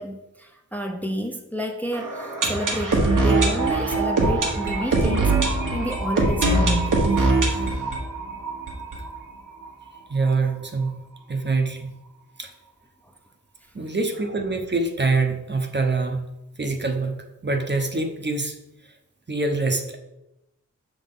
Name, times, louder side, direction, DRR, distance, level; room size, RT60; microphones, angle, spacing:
voice 1, 0.0-7.0, equal, 5° left, 2 dB, 0.8 m, -30 dB
sound 1, 1.9-9.7 10.0-10.1 10.2-10.3 10.9-11.0, right 2 dB, 75° right, 1.4 m, -22 dB
voice 2, 10.1-11.0 11.3-11.9 12.4-12.5 13.7-16.3 16.6-18.6 19.3-20.0, right 3 dB, 35° right, 4 dB, 1.0 m, -25 dB
6.1 x 3.9 x 5.4 m, 0.90 s
cardioid pair, 60°, 31 cm